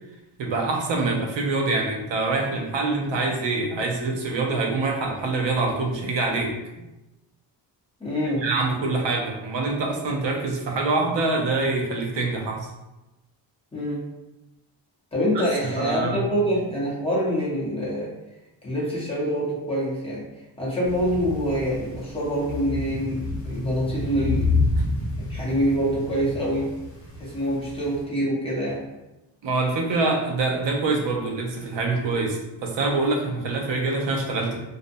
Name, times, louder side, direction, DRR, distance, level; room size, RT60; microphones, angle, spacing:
voice 1, 0.4-6.5 8.2-12.7 15.3-15.4 15.8-16.3 29.4-34.6, right 3 dB, 70° right, 1 dB, 0.6 m, -25 dB
voice 2, 8.0-8.4 13.7-14.0 15.1-18.1 18.6-20.3 20.6-24.7 25.2-26.7 27.2-28.9, equal, 10° left, -6 dB, 0.7 m, -25 dB
sound 1, 20.8-28.0, left 3 dB, 50° left, 0.8 m, -29 dB
2.5 x 2.1 x 2.6 m, 1.0 s
wide cardioid pair, 140°, 45 cm